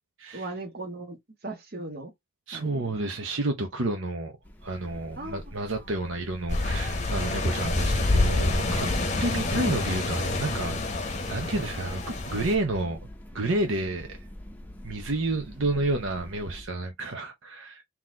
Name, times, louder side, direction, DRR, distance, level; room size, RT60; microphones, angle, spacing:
voice 1, 0.3-1.2 1.4-2.1 2.5-2.9 5.2-5.4 5.7-5.9, right 2 dB, 50° right, 1.3 m, -38 dB
voice 2, 2.5-4.4 4.6-8.9 9.2-10.9 11.3-13.0 13.3-14.2 14.8-17.8, right 2 dB, 70° right, 0.8 m, -30 dB
sound 1, 4.4-16.7, left 1 dB, 10° left, 0.7 m, -46 dB
sound 2, 6.5-12.6, left 2 dB, 35° left, 0.8 m, -27 dB
4.0 x 3.0 x 3.7 m
head